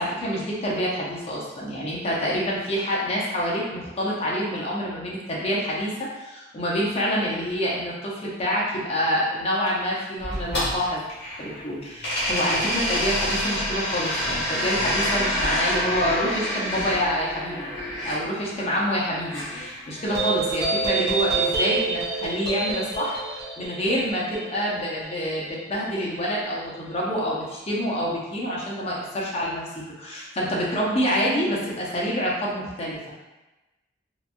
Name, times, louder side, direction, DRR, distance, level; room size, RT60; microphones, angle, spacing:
voice 1, 0.0-11.0 11.4-17.7 18.0-29.6 30.0-33.0, equal, 35° left, -5 dB, 0.6 m, -27 dB
sound 1, 10.2-11.6 12.0-18.2 19.3-20.4, equal, 60° left, 1.3 m, -27 dB
sound 2, 20.1-26.9, right 3 dB, 25° right, 1.1 m, -28 dB
2.9 x 2.3 x 2.5 m, 1.1 s
head